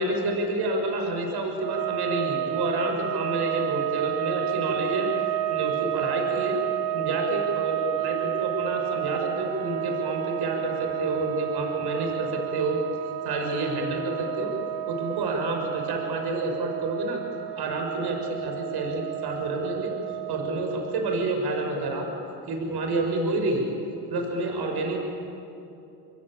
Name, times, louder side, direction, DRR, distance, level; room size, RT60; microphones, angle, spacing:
voice 1, 0.0-5.1 5.5-6.6 6.9-12.8 13.2-14.5 14.9-17.2 17.6-19.9 20.3-22.1 22.5-23.7 24.1-25.0, right 2 dB, 60° right, 2 dB, 6.4 m, -29 dB
sound 1, 1.6-21.2, right 13 dB, 90° right, 1.2 m, -31 dB
27.0 x 21.0 x 9.0 m, 2.8 s
supercardioid pair, 75°, 43 cm